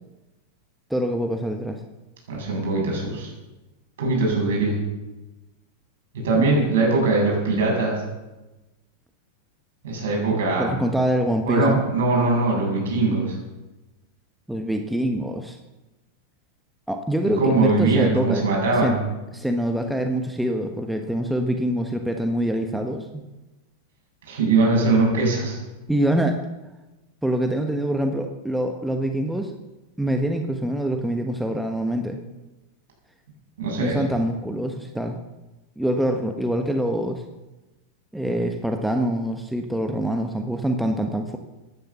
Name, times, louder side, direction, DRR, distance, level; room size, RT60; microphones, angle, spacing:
voice 1, 0.9-1.8 6.3-6.7 10.3-11.8 14.5-15.6 16.9-18.4 18.8-19.0 19.3-23.2 25.9-26.4 27.2-29.5 30.0-32.2 33.8-35.2 35.8-37.2 38.1-41.4, right 1 dB, ahead, 4 dB, 1.3 m, -25 dB
voice 2, 2.3-3.3 4.0-4.8 6.1-8.0 9.8-10.7 11.5-13.3 17.4-19.0 24.3-25.6 33.6-34.0, right 3 dB, 60° right, -1 dB, 7.5 m, -21 dB
16.5 x 10.5 x 7.0 m, 1.1 s
figure-of-eight pair, 90°, 0 cm